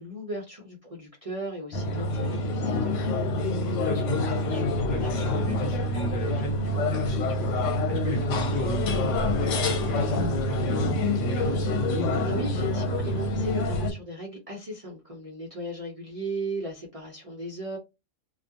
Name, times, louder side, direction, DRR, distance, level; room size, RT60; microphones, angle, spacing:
voice 1, 0.0-3.0 12.3-17.8, right 1 dB, 40° right, 0.5 m, -36 dB
sound 1, 1.7-13.9, left 1 dB, 80° left, 0.9 m, -26 dB
voice 2, 3.7-7.5 7.9-11.5, left 1 dB, 55° left, 1.3 m, -35 dB
2.3 x 2.2 x 2.7 m
omnidirectional pair, 1.3 m